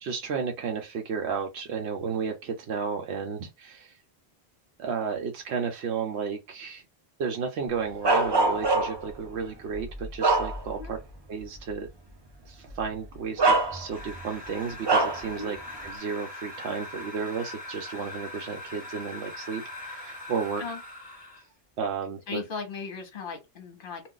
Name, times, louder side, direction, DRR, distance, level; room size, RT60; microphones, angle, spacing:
voice 1, 0.0-4.0 4.8-6.8 7.2-11.0 11.3-11.9 12.5-15.6 15.8-20.6 21.8-22.4, right 6 dB, 80° right, 0.9 m, -33 dB
Bark, 8.0-9.1 9.7-11.0 11.4-11.6 12.7-12.8 13.4-14.2 14.9-15.3, right 3 dB, 35° right, 0.5 m, -24 dB
sound 1, 13.9-21.5, left 2 dB, 10° right, 1.2 m, -41 dB
voice 2, 22.3-24.0, left 5 dB, 55° left, 1.1 m, -37 dB
2.4 x 2.4 x 3.8 m
omnidirectional pair, 1.1 m